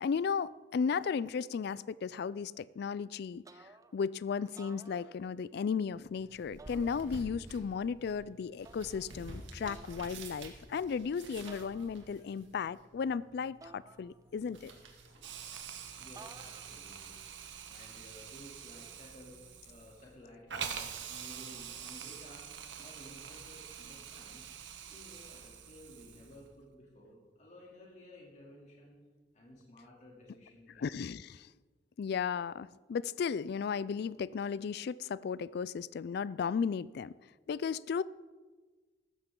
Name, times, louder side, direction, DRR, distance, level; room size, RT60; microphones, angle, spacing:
voice 1, 0.0-14.7 30.8-31.5 32.0-37.1 37.5-38.0, left 6 dB, 60° left, 19 dB, 0.3 m, -35 dB
sound 1, 3.4-4.1 4.5-5.6 6.6-7.5 8.6-9.2 9.6-10.2 11.5-12.3 13.6-14.6 16.2-16.9, right 3 dB, 20° right, 0.5 m, -55 dB
sound 2, 5.9-16.9, right 2 dB, 85° right, 2.1 m, -51 dB
Hiss, 15.2-26.5, right 7 dB, 70° right, 1.2 m, -45 dB
voice 2, 16.0-17.2 17.6-22.5 22.8-24.4 24.8-29.0 29.3-30.8, left 1 dB, 40° left, -3 dB, 2.9 m, -55 dB
15.0 x 13.5 x 3.8 m, 1.4 s
head